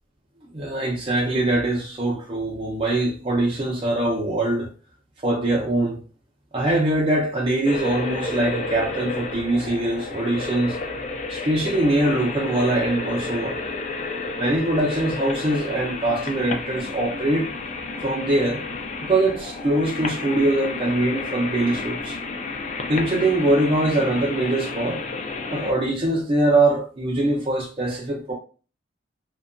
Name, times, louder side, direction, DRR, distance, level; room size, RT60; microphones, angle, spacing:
voice 1, 0.5-4.7 5.2-6.0 6.5-10.8 11.3-13.6 14.4-17.5 18.0-18.6 19.1-22.2 22.9-25.0 25.5-28.3, right 1 dB, 30° right, 0.5 m, -22 dB
sound 1, 7.6-25.7, left 3 dB, 40° left, 0.4 m, -31 dB
2.7 x 2.2 x 2.5 m
head